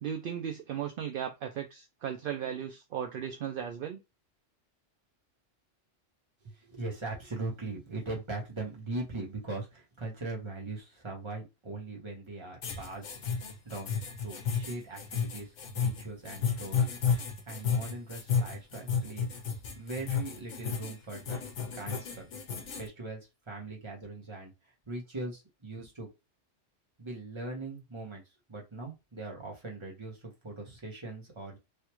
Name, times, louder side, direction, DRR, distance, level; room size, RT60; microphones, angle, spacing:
voice 1, 0.0-4.0, right 9 dB, 60° right, 0.6 m, -36 dB
voice 2, 6.4-13.1 13.6-19.3 19.8-21.4 21.7-22.3 22.8-23.2 23.5-24.5 24.9-26.1 27.0-28.2 28.5-31.6, right 2 dB, 25° right, 1.1 m, -40 dB
sound 1, 12.6-22.9, left 6 dB, 75° left, 1.1 m, -32 dB
3.4 x 2.3 x 3.0 m
omnidirectional pair, 1.3 m